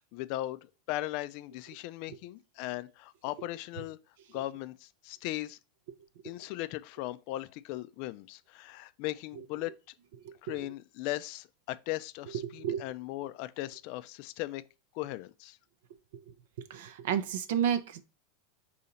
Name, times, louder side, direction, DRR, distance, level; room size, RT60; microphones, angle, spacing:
voice 1, 0.1-0.6 0.9-4.0 4.3-5.6 6.2-9.7 10.4-14.6 14.9-15.6, left 16 dB, 55° left, 0.3 m, -38 dB
voice 2, 12.4-12.9 16.6-18.0, right 9 dB, 70° right, 0.4 m, -31 dB
4.2 x 2.8 x 3.9 m
hypercardioid pair, 100°, 0 cm